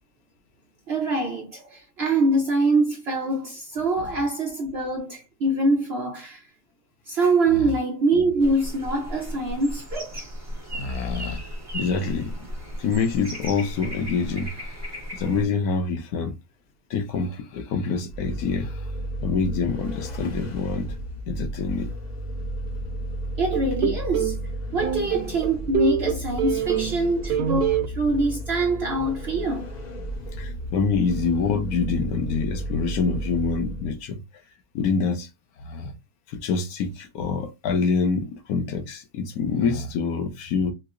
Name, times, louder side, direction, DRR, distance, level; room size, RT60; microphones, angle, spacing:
voice 1, 0.9-6.4 7.1-10.2 23.4-24.3 24.7-29.7, right 2 dB, 60° right, 0.7 m, -24 dB
sound 1, 8.4-15.4, equal, 15° right, 0.8 m, -35 dB
voice 2, 10.7-11.4 11.7-12.5 12.8-16.3 16.9-18.9 19.2-21.0 21.3-21.9 30.4-34.2 34.7-35.3 35.6-35.9 36.3-40.7, left 5 dB, 75° left, 1.2 m, -26 dB
Vehicle, 18.1-34.0, right 1 dB, 50° left, 0.5 m, -33 dB
sound 2, 23.5-24.4 24.8-27.0 27.3-27.9, right 10 dB, 85° right, 1.2 m, -25 dB
4.6 x 2.0 x 2.4 m
omnidirectional pair, 1.7 m